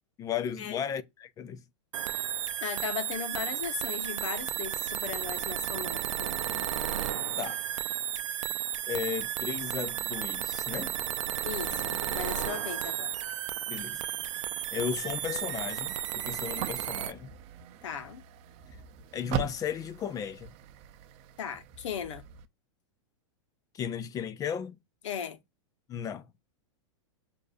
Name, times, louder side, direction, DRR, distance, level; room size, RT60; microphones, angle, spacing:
voice 1, 0.2-1.6 7.4-7.6 8.9-10.9 13.7-14.0 14.7-17.3 18.7-18.8 19.1-20.5 23.7-24.8 25.9-26.3, left 8 dB, 25° left, 0.5 m, -35 dB
sound 1, 1.9-17.1, right 11 dB, 85° right, 0.5 m, -33 dB
voice 2, 2.6-6.4 11.4-13.2 17.8-18.2 21.4-22.2 25.0-25.4, left 8 dB, 75° left, 1.0 m, -37 dB
sound 2, 13.9-22.5, right 8 dB, 40° right, 0.6 m, -42 dB
6.2 x 2.7 x 2.5 m
hypercardioid pair, 130°, 16 cm